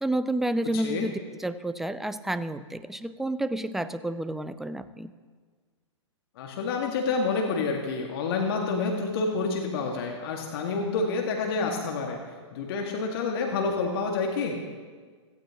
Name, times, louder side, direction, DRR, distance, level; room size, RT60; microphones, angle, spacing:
voice 1, 0.0-5.1, right 1 dB, ahead, 14 dB, 0.3 m, -30 dB
voice 2, 0.7-1.1 6.4-12.2 12.5-14.6, left 4 dB, 50° left, 1 dB, 1.8 m, -28 dB
17.0 x 15.0 x 2.9 m, 1.5 s
figure-of-eight pair, 110°, 16 cm